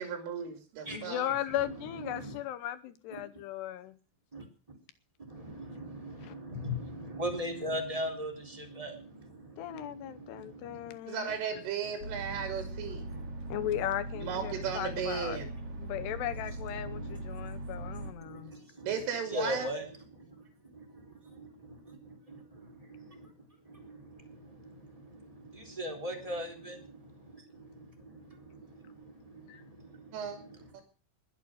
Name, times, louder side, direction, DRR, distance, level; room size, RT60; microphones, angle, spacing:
voice 1, 0.0-1.2 11.1-13.0 14.2-15.5 18.8-19.7 30.1-30.4 30.7-30.8, right 7 dB, 90° right, 5 dB, 5.2 m, -35 dB
voice 2, 0.9-4.0 6.2-6.4 9.6-11.3 13.5-15.5 15.8-18.5 29.5-29.6, left 12 dB, 75° left, 12 dB, 2.6 m, -37 dB
voice 3, 2.0-2.4 4.3-4.4 5.3-10.9 13.1-13.5 16.8-17.2 17.9-18.9 19.3-19.8 20.1-20.4 20.7-23.3 23.6-30.6, equal, 10° right, 4 dB, 3.1 m, -41 dB
sound 1, 12.0-18.1, right 2 dB, 35° right, 3.6 m, -40 dB
21.0 x 8.5 x 6.3 m, 0.38 s
omnidirectional pair, 5.5 m